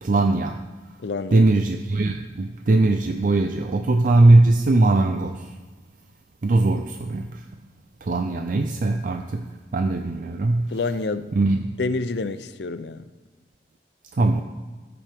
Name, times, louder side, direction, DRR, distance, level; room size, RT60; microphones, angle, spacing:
voice 1, 0.0-0.6 1.3-5.5 6.4-7.4 8.0-10.7 11.3-11.7 14.1-14.4, right 2 dB, 50° right, 6 dB, 0.4 m, -20 dB
voice 2, 1.0-1.5 10.7-11.3 11.8-13.0, left 3 dB, 65° left, 12 dB, 0.5 m, -28 dB
13.5 x 8.5 x 3.5 m, 1.3 s
head